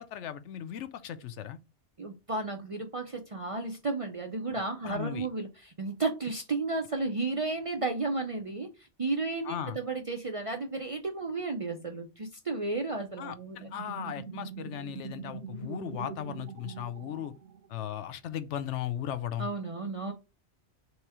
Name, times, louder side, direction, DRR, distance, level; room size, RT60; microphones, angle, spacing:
voice 1, 0.0-1.6 4.8-5.3 9.4-9.8 13.2-17.3 17.7-19.5, left 10 dB, 85° left, 0.9 m, -37 dB
voice 2, 2.0-8.7 9.0-13.7 19.4-20.1, right 3 dB, 45° right, 0.4 m, -33 dB
sound 1, 13.5-17.9, right 7 dB, 80° right, 1.0 m, -43 dB
3.2 x 3.0 x 4.6 m
omnidirectional pair, 1.2 m